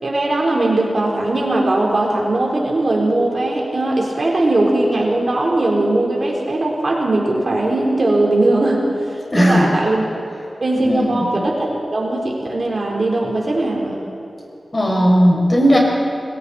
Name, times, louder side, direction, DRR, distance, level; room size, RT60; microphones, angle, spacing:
voice 1, 0.0-8.8 9.1-10.0 10.6-14.0, right 2 dB, 45° right, -2 dB, 4.1 m, -19 dB
voice 2, 9.3-9.7 10.8-11.2 14.7-15.8, equal, 25° left, -2 dB, 5.8 m, -15 dB
29.5 x 22.5 x 4.4 m, 2.9 s
wide cardioid pair, 115°, 0 cm